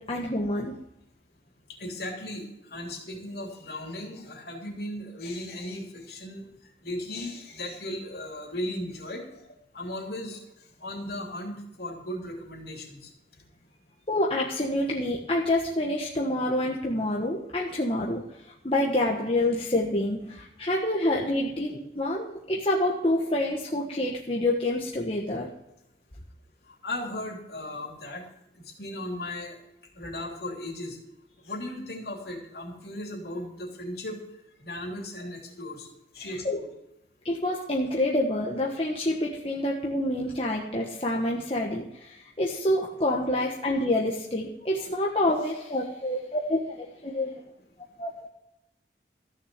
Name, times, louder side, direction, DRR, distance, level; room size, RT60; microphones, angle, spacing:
voice 1, 0.1-0.7 14.1-18.2 18.6-25.5 36.4-36.6 37.2-47.4 48.0-48.1, left 1 dB, 30° left, -2 dB, 1.2 m, -27 dB
voice 2, 1.8-6.5 6.8-9.4 9.7-10.4 10.8-13.1 26.7-28.2 28.5-29.6 29.9-31.0 31.4-34.2 34.6-35.9 36.1-36.7, left 1 dB, 60° left, 0 dB, 3.2 m, -36 dB
14.5 x 6.6 x 8.1 m, 0.86 s
head